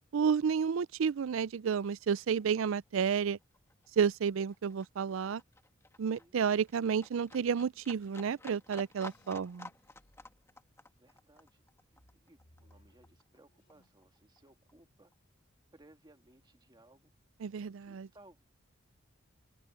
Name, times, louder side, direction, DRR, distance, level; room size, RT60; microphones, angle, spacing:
voice 1, 0.1-3.4 4.0-5.4 6.0-9.7 17.4-18.1, right 6 dB, 75° right, 0.4 m, -31 dB
Livestock farm animals working animals, 2.0-2.1 2.4-13.4 13.7-14.7 15.0-15.1, left 2 dB, 15° left, 1.5 m, -53 dB
voice 2, 6.0-6.6 11.0-11.6 11.9-15.1 15.7-17.1 17.8-18.5, right 1 dB, 20° right, 1.8 m, -62 dB
sound 1, 9.0-11.0 11.5-14.1 14.4-15.0, left 1 dB, 55° left, 3.0 m, -67 dB
head